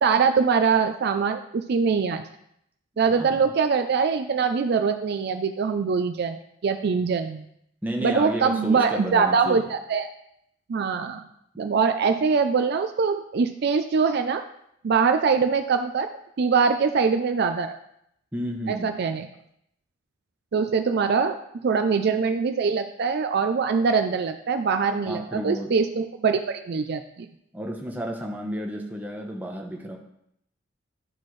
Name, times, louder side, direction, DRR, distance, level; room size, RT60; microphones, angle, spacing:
voice 1, 0.0-2.2 3.0-7.5 8.0-10.1 10.7-11.2 11.6-14.4 14.8-16.1 16.4-17.8 18.7-19.3 20.5-21.4 21.6-27.3, right 5 dB, 55° right, 8 dB, 0.4 m, -23 dB
voice 2, 7.8-9.6 18.3-18.9 25.0-25.7 27.5-30.0, equal, 10° right, 1 dB, 0.9 m, -32 dB
11.5 x 4.3 x 3.2 m, 0.74 s
head